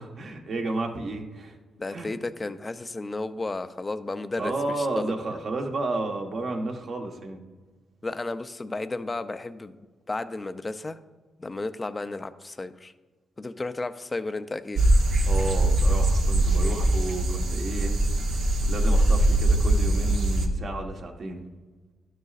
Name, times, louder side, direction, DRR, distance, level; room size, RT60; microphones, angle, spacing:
voice 1, 0.0-1.6 1.9-2.1 4.4-7.4 15.3-18.0 18.6-21.4, right 2 dB, 60° right, 2 dB, 1.2 m, -32 dB
voice 2, 1.8-5.1 8.0-9.8 10.1-11.0 11.4-12.9 13.4-14.8, left 2 dB, 25° left, 11 dB, 0.5 m, -33 dB
sound 1, 14.8-20.5, right 1 dB, 75° right, 1.0 m, -22 dB
12.0 x 6.6 x 2.5 m, 1.3 s
cardioid pair, 65°, 0 cm